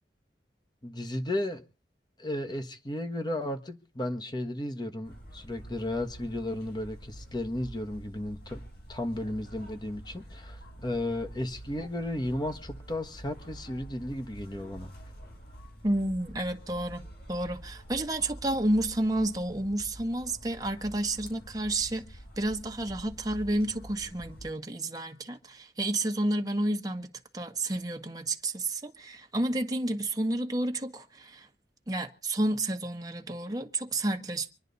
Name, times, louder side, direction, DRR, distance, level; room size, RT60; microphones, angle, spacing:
voice 1, 0.8-1.6 2.2-8.6 8.9-14.9, left 1 dB, 25° left, 1.3 m, -34 dB
sound 1, 5.0-24.5, right 1 dB, 65° left, 3.9 m, -47 dB
voice 2, 15.8-22.0 22.4-31.5 31.9-34.5, right 1 dB, 20° right, 1.4 m, -30 dB
26.0 x 10.0 x 4.1 m
head